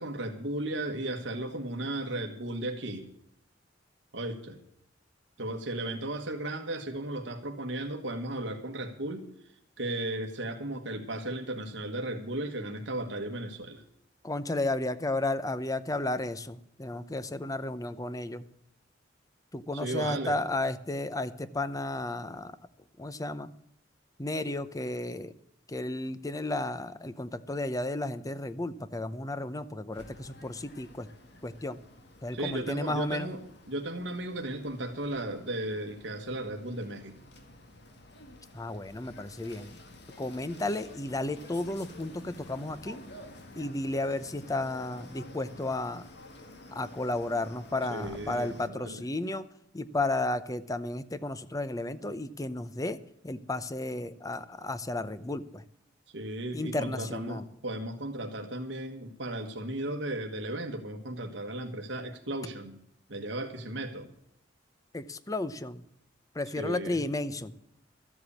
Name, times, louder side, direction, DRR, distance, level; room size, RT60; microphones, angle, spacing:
voice 1, 0.0-3.1 4.1-4.6 5.4-9.3 9.8-13.8 19.7-20.4 32.3-33.4 33.7-37.1 47.9-49.0 56.1-62.8 63.1-64.1 66.6-67.0, right 1 dB, 70° right, 4 dB, 1.4 m, -35 dB
voice 2, 14.2-18.4 19.5-22.5 23.0-23.5 24.2-25.3 25.7-31.1 31.4-31.8 32.2-33.3 38.5-39.8 40.2-43.0 43.6-46.1 46.7-49.5 49.7-53.0 53.2-55.6 56.5-57.5 64.9-65.8 66.3-67.5, left 2 dB, 20° left, 13 dB, 0.7 m, -33 dB
sound 1, 29.9-48.7, left 1 dB, 60° left, 2.0 m, -51 dB
13.5 x 7.9 x 8.4 m, 0.74 s
head